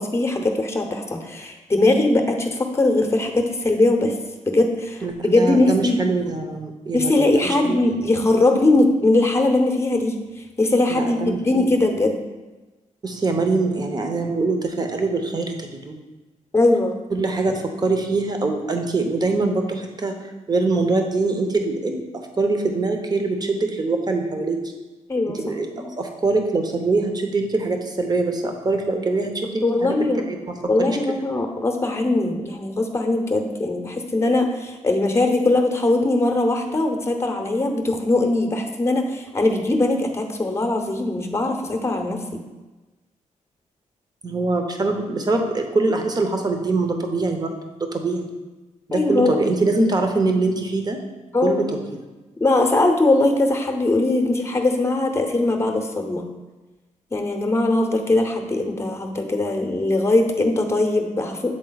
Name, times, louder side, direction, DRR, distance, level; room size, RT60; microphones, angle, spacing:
voice 1, 0.0-4.2 4.4-6.0 6.9-12.2 16.5-17.0 25.1-25.4 25.8-25.9 29.6-30.2 30.7-42.4 48.9-49.4 51.3-51.6 52.4-56.2 57.1-61.6, left 2 dB, 20° left, 4 dB, 0.8 m, -20 dB
voice 2, 5.0-7.8 10.9-11.7 13.0-16.0 17.1-24.7 25.3-29.9 30.3-30.4 30.8-31.0 44.2-48.3 48.9-51.0 51.4-52.0, right 3 dB, 30° right, 4 dB, 0.9 m, -23 dB
7.7 x 3.9 x 4.0 m, 1.2 s
cardioid pair, 95°, 13 cm